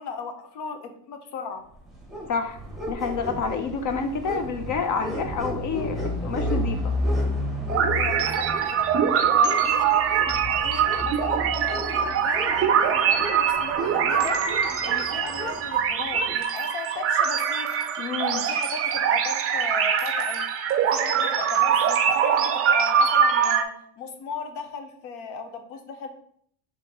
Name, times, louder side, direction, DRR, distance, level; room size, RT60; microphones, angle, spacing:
voice 1, 0.0-1.6 7.8-20.5 20.9-26.1, left 5 dB, 70° left, 6 dB, 0.9 m, -36 dB
sound 1, 1.8-16.4, left 1 dB, ahead, 1.1 m, -32 dB
voice 2, 2.9-6.9 18.0-18.4, left 5 dB, 45° left, 7 dB, 0.6 m, -28 dB
sound 2, 7.7-23.6, right 7 dB, 35° right, 0.4 m, -23 dB
4.1 x 3.0 x 4.2 m, 0.63 s
cardioid pair, 125°, 42 cm